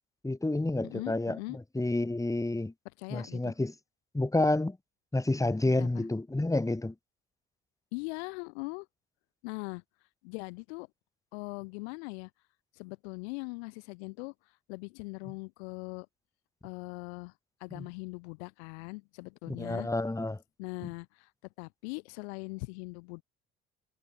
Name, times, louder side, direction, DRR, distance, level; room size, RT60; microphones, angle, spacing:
voice 1, 0.2-1.4 1.7-2.7 3.1-3.7 4.1-4.8 5.1-6.9 17.7-17.9 19.5-20.4, left 2 dB, 10° left, 2.2 m, -29 dB
voice 2, 0.8-1.6 3.0-3.6 5.7-6.1 7.9-8.9 9.4-9.8 10.2-10.9 11.3-12.3 12.8-14.3 14.7-16.1 16.6-17.3 17.6-19.9 20.6-21.3 21.6-23.2, left 29 dB, 65° left, 1.8 m, -40 dB
figure-of-eight pair, 60°, 34 cm